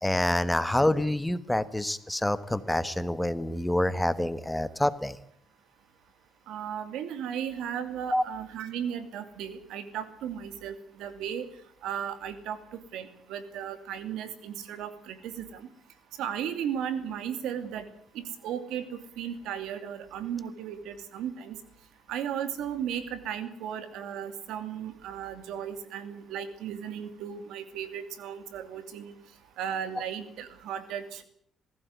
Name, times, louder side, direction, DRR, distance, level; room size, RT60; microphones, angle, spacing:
voice 1, 0.0-5.2 8.1-8.2, left 1 dB, 10° left, 13 dB, 1.4 m, -27 dB
voice 2, 6.5-11.5 11.8-15.7 16.2-17.9 18.1-21.6 22.1-29.1 29.6-31.2, right 9 dB, 90° right, 10 dB, 2.6 m, -35 dB
19.5 x 16.0 x 9.6 m, 0.66 s
cardioid pair, 90°, 0 cm